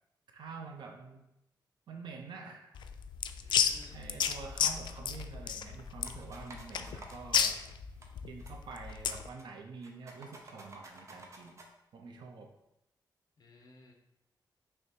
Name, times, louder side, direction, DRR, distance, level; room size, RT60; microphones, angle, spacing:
voice 1, 0.3-1.2 1.9-2.8 3.5-7.7 8.3-11.6 11.9-12.5, right 4 dB, 80° right, 3 dB, 0.7 m, -47 dB
sound 1, 2.7-9.3, left 8 dB, 85° left, 0.4 m, -32 dB
voice 2, 3.4-4.2 13.4-13.9, left 3 dB, 55° left, 2 dB, 1.1 m, -57 dB
sound 2, 6.0-7.2 8.0-8.1 8.4-8.6 8.8-9.5 9.8-11.7, right 2 dB, 40° right, 0.9 m, -52 dB
6.2 x 3.5 x 4.4 m, 0.86 s
wide cardioid pair, 135°, 8 cm